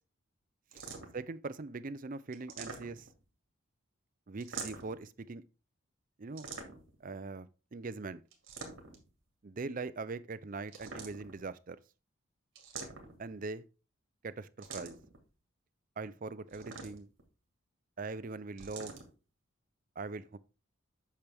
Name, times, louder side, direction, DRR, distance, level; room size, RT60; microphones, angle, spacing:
sound 1, 0.7-1.3 2.3-3.2 4.4-5.0 6.4-7.0 8.3-9.1 10.7-11.4 12.6-13.3 14.6-15.2 16.5-17.2 18.6-19.1, right 4 dB, 60° right, 2.2 m, -45 dB
voice 1, 1.1-3.1 4.3-5.4 6.2-6.5 7.0-8.2 9.4-11.8 13.2-13.6 14.2-15.0 16.0-17.1 18.0-18.9 20.0-20.4, right 3 dB, 40° right, 0.5 m, -41 dB
8.5 x 6.1 x 3.4 m
head